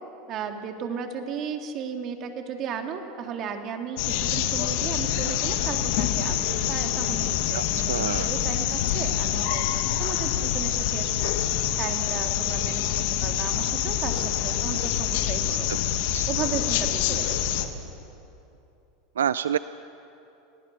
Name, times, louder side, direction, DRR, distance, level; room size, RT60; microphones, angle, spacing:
voice 1, 0.3-11.3 11.8-12.8 13.2-15.7 16.3-17.7, right 7 dB, 45° right, 4 dB, 2.9 m, -35 dB
sound 1, 4.0-17.7, left 11 dB, 65° left, 1.7 m, -26 dB
voice 2, 7.5-8.3 15.7-15.8 16.1-16.2 19.2-19.6, right 9 dB, 90° right, 15 dB, 0.4 m, -27 dB
29.0 x 19.0 x 7.0 m, 2.8 s
hypercardioid pair, 100°, 0 cm